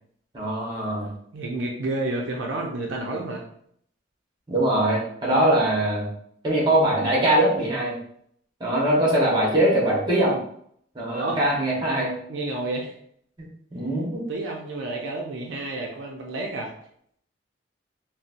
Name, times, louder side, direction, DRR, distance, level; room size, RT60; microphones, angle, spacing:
voice 1, 0.3-1.1 4.5-6.1 6.4-8.0 8.6-10.4 10.9-12.1 13.4-14.2, right 1 dB, 25° right, -4 dB, 0.9 m, -22 dB
voice 2, 1.3-3.5 11.1-11.4 12.3-12.9 14.3-16.7, right 2 dB, 70° right, 0 dB, 0.4 m, -30 dB
4.0 x 2.0 x 2.5 m, 0.67 s
head